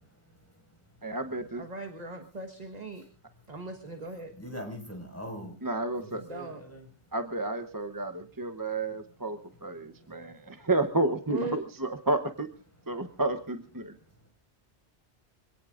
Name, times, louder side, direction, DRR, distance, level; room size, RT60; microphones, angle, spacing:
voice 1, 1.0-1.6 5.6-6.2 7.1-12.5 12.9-13.9, right 2 dB, 20° right, 7 dB, 0.9 m, -31 dB
voice 2, 1.6-3.1 3.5-4.3 6.2-6.6 11.3-11.6, right 3 dB, 40° right, 5 dB, 1.5 m, -39 dB
voice 3, 4.4-5.5 6.0-6.8, equal, 10° left, 2 dB, 5.2 m, -41 dB
25.5 x 17.5 x 2.5 m, 0.34 s
omnidirectional pair, 1.1 m